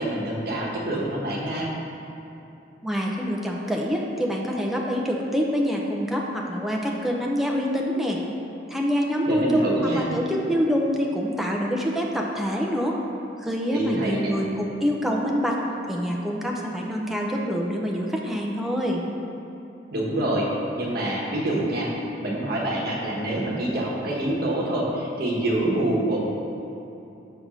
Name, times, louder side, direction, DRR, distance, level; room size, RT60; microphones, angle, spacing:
voice 1, 0.0-1.7 9.3-10.1 13.7-14.3 19.9-20.5 20.7-21.9 22.2-26.2, right 1 dB, 55° right, -3 dB, 1.2 m, -26 dB
voice 2, 2.8-8.2 8.7-9.7 10.0-13.0 13.4-15.6 15.9-19.0, equal, ahead, -2 dB, 0.6 m, -26 dB
6.5 x 3.5 x 6.1 m, 2.9 s
head